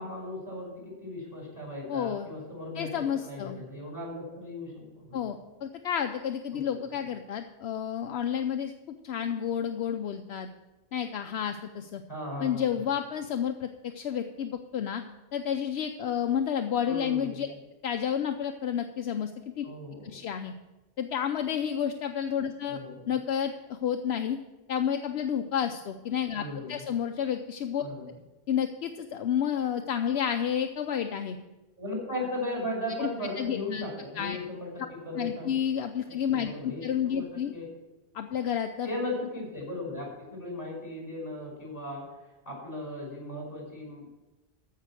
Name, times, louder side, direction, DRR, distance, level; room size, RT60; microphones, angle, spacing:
voice 1, 0.0-5.2 6.5-7.0 12.1-12.7 16.9-17.5 19.6-20.2 22.7-23.1 26.3-26.8 27.8-28.1 31.8-35.6 36.1-37.6 38.8-42.0 42.5-44.0, left 1 dB, 35° left, -2 dB, 5.5 m, -37 dB
voice 2, 1.9-2.3 2.7-3.6 5.1-8.7 9.0-10.5 10.9-12.0 12.4-15.0 15.3-17.5 17.8-19.3 19.6-19.7 20.0-20.5 21.0-22.8 23.1-24.4 24.7-27.8 28.5-31.4 33.0-33.1 33.4-33.8 34.1-34.4 35.1-37.5 38.1-38.9, left 8 dB, 75° left, 6 dB, 0.9 m, -30 dB
14.0 x 5.7 x 7.5 m, 1.1 s
omnidirectional pair, 1.1 m